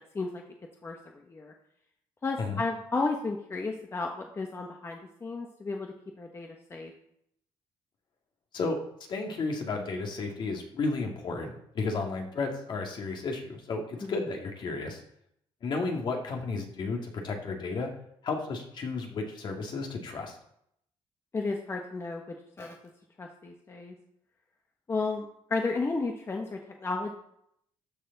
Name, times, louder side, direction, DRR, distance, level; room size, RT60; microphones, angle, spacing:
voice 1, 0.8-1.5 2.2-6.9 14.0-14.2 21.3-22.7 23.2-23.9 24.9-27.1, left 3 dB, 25° left, 1 dB, 1.2 m, -33 dB
voice 2, 9.1-15.0 15.6-17.9 18.2-20.4, left 3 dB, 55° left, 1 dB, 2.3 m, -33 dB
13.5 x 6.8 x 4.1 m, 0.72 s
cardioid pair, 120°, 10 cm